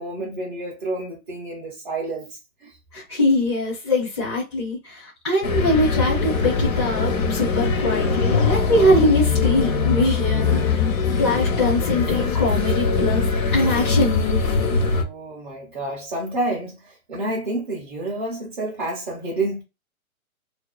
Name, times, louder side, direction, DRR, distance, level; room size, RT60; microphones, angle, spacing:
voice 1, 0.0-2.7 14.9-19.6, right 2 dB, 35° right, 0.6 m, -29 dB
voice 2, 2.9-10.9 11.2-13.2 13.5-14.8, left 1 dB, 20° left, 0.4 m, -22 dB
sound 1, 5.4-15.0, left 4 dB, 65° left, 0.7 m, -21 dB
2.4 x 2.3 x 2.3 m
hypercardioid pair, 160°, 43 cm